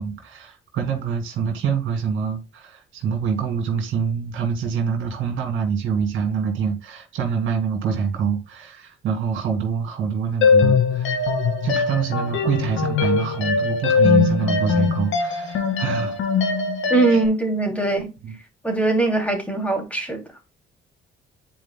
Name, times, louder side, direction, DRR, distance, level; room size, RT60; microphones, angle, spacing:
voice 1, 0.0-11.2 11.6-16.2 17.1-17.2 18.2-18.4, right 6 dB, 80° right, 2.2 m, -25 dB
sound 1, 10.4-17.3, left 5 dB, 80° left, 1.8 m, -21 dB
voice 2, 16.9-18.1 18.6-20.2, right 3 dB, 5° left, 2.7 m, -21 dB
10.0 x 4.7 x 2.2 m
cardioid pair, 90°, 20 cm